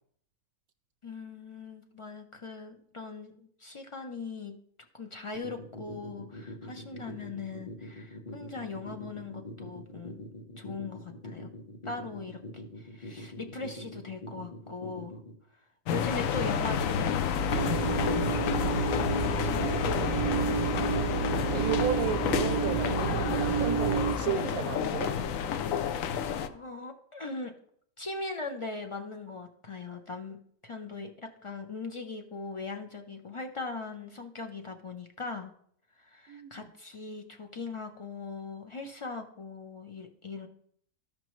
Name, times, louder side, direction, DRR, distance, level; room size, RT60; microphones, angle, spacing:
voice 1, 1.0-4.5 4.9-11.5 11.8-12.4 12.8-15.2 15.9-20.8 25.9-27.5 28.0-30.4 30.6-35.5 36.0-40.5, left 4 dB, 50° left, 0.4 m, -40 dB
sound 1, 5.3-15.3, left 1 dB, 30° left, 0.9 m, -43 dB
sound 2, 15.9-26.5, left 7 dB, 75° left, 0.9 m, -30 dB
sound 3, 17.5-24.2, right 7 dB, 55° right, 0.4 m, -30 dB
voice 2, 21.4-25.2 36.3-36.7, right 8 dB, 85° right, 1.0 m, -33 dB
13.5 x 5.2 x 3.1 m
omnidirectional pair, 1.4 m